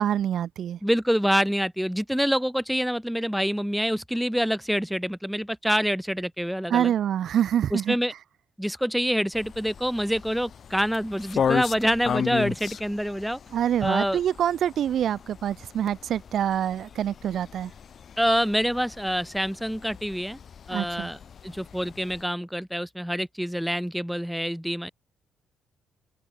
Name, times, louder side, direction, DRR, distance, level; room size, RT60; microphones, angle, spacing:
voice 1, 0.0-0.8 6.7-8.0 13.5-17.7 20.7-21.1, right 10 dB, 65° right, 1.6 m, -26 dB
voice 2, 0.8-6.9 7.7-8.1 8.6-13.4 13.8-14.2 18.2-20.4 20.7-21.2 21.4-24.9, equal, ahead, 3.4 m, -26 dB
sound 1, 9.3-22.2, left 7 dB, 55° left, 2.4 m, -35 dB
cardioid pair, 90°, 0 cm